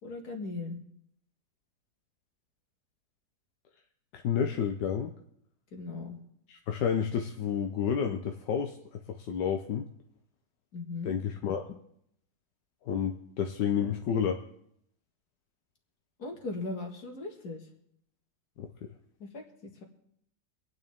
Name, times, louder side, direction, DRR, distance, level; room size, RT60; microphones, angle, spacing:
voice 1, 0.0-0.8 5.7-6.2 10.7-11.2 16.2-17.6 19.2-19.8, left 3 dB, 65° left, 3 dB, 2.4 m, -38 dB
voice 2, 4.1-5.1 6.5-9.9 11.0-11.8 12.8-14.4 18.6-18.9, left 7 dB, 85° left, 4 dB, 1.5 m, -30 dB
25.5 x 9.6 x 3.6 m, 0.73 s
omnidirectional pair, 1.8 m